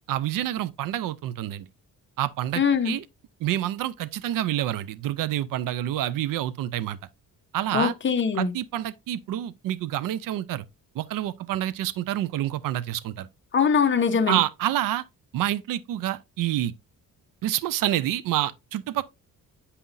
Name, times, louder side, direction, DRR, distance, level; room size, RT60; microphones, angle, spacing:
voice 1, 0.1-1.7 2.2-3.0 3.4-7.0 7.5-7.9 8.3-10.6 10.9-13.3 14.3-15.0 15.3-16.7 17.4-19.0, right 13 dB, 90° right, 0.5 m, -28 dB
voice 2, 2.6-2.9 7.7-8.5 13.5-14.4, left 6 dB, 35° left, 1.0 m, -22 dB
8.3 x 5.6 x 2.5 m
cardioid pair, 140°, 32 cm